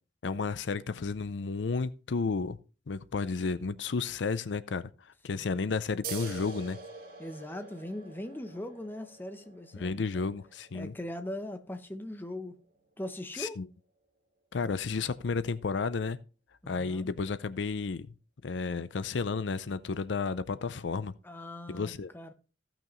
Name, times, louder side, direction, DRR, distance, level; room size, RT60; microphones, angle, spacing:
voice 1, 0.2-2.6 2.9-6.8 9.7-10.9 13.3-13.6 14.5-16.2 16.7-18.1 18.4-21.1 21.7-22.1, left 4 dB, 75° left, 0.5 m, -32 dB
sound 1, 6.0-13.2, right 5 dB, 50° right, 2.2 m, -46 dB
voice 2, 7.2-10.3 10.7-12.6 13.0-13.6 16.6-17.1 21.2-22.3, left 1 dB, 10° left, 0.8 m, -40 dB
15.5 x 6.0 x 3.1 m
head